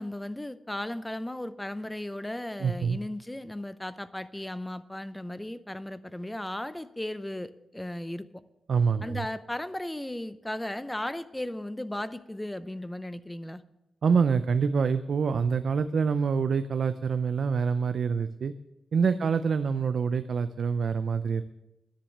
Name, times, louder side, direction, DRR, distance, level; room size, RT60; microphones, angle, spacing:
voice 1, 0.0-8.3 9.0-13.6 19.1-19.3, left 1 dB, 10° left, 13 dB, 0.6 m, -36 dB
voice 2, 2.6-3.0 8.7-9.3 14.0-18.5 18.9-21.4, right 6 dB, 60° right, 10 dB, 0.5 m, -26 dB
10.0 x 10.0 x 6.6 m, 0.90 s
wide cardioid pair, 130°, 0 cm